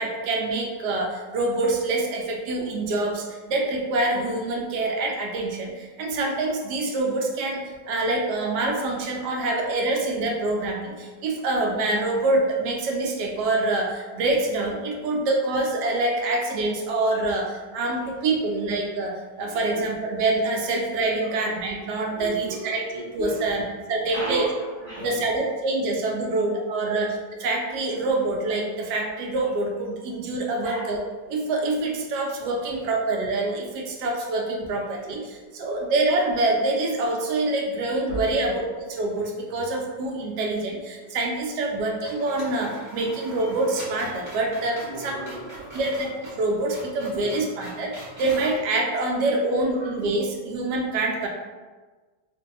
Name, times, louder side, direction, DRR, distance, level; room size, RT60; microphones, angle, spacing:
voice 1, 0.0-22.8 23.1-23.6 23.9-24.5 25.0-31.0 31.3-45.2 45.7-51.3, right 2 dB, 85° right, 1 dB, 1.2 m, -26 dB
voice 2, 19.4-19.8 21.2-21.3 22.0-23.5 24.1-24.5 24.8-25.4 26.3-26.4 26.9-27.0 30.6-30.9 32.7-32.8 38.1-38.2 44.8-45.8 47.1-47.5 49.5-49.9, right 1 dB, 50° right, -8 dB, 0.9 m, -36 dB
sound 1, 38.9-39.7 40.0-40.1 41.6-41.8 42.0-48.6, equal, 30° right, 1.1 m, -42 dB
2.6 x 2.6 x 3.9 m, 1.3 s
omnidirectional pair, 1.8 m